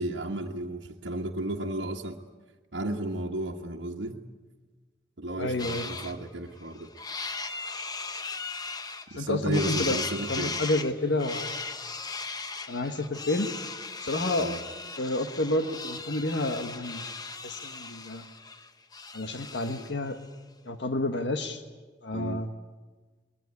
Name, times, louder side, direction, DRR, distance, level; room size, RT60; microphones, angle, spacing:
voice 1, 0.0-2.2 2.7-4.2 5.2-6.9 9.1-10.5 14.4-14.6 22.1-22.4, right 1 dB, 90° right, -2 dB, 1.4 m, -33 dB
voice 2, 5.4-5.9 9.1-10.0 10.3-11.6 12.7-13.5 14.0-14.5 15.0-17.0 17.4-18.2 19.1-20.2 20.6-21.6 22.0-22.5, left 2 dB, 75° left, 7 dB, 1.4 m, -29 dB
sound 1, 5.6-6.1 6.6-9.2 9.5-20.0, left 4 dB, 20° left, 1.0 m, -37 dB
21.5 x 21.0 x 9.6 m, 1.4 s
head